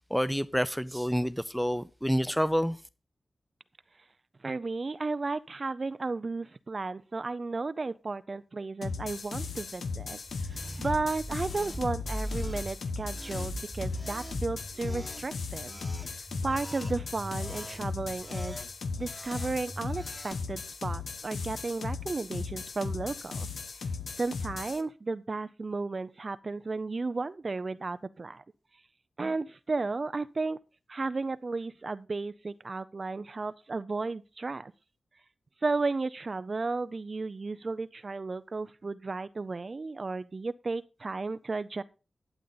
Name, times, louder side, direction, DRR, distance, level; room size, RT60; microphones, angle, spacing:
voice 1, 0.1-2.8, equal, ahead, 0.5 m, -28 dB
voice 2, 4.4-15.8 16.4-18.6 19.0-23.5 24.2-28.4 29.2-30.6 30.9-34.7 35.6-41.8, right 3 dB, 45° right, 0.5 m, -34 dB
sound 1, 8.8-24.8, left 4 dB, 85° left, 1.0 m, -37 dB
sound 2, 10.3-20.4, equal, 15° left, 1.5 m, -41 dB
12.0 x 8.1 x 4.0 m
wide cardioid pair, 75°, 0 cm